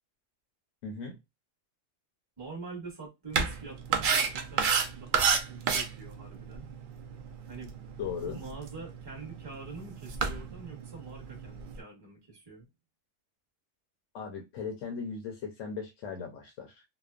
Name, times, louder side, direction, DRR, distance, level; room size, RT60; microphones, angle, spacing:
voice 1, 0.8-1.2 8.0-8.4 14.1-16.8, left 5 dB, 85° left, 1.0 m, -38 dB
voice 2, 2.4-6.7 7.5-7.8 8.2-12.7, right 4 dB, 20° right, 0.9 m, -45 dB
sound 1, 3.3-11.8, right 6 dB, 60° right, 0.5 m, -32 dB
2.9 x 2.0 x 2.3 m
omnidirectional pair, 1.3 m